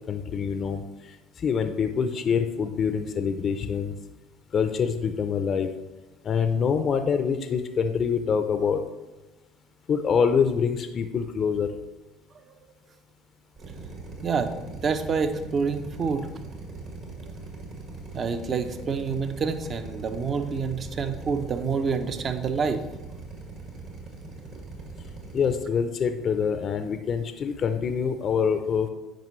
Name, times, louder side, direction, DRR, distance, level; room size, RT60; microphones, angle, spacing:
voice 1, 0.1-3.9 4.5-5.7 6.2-8.8 9.9-11.7 25.3-28.9, left 6 dB, 45° left, 8 dB, 0.5 m, -25 dB
Drill, 13.6-25.5, right 3 dB, 55° right, 1.8 m, -40 dB
voice 2, 14.2-16.3 18.1-22.8, right 5 dB, 40° right, 8 dB, 0.7 m, -27 dB
9.0 x 5.1 x 3.1 m, 1.1 s
hypercardioid pair, 75°, 0 cm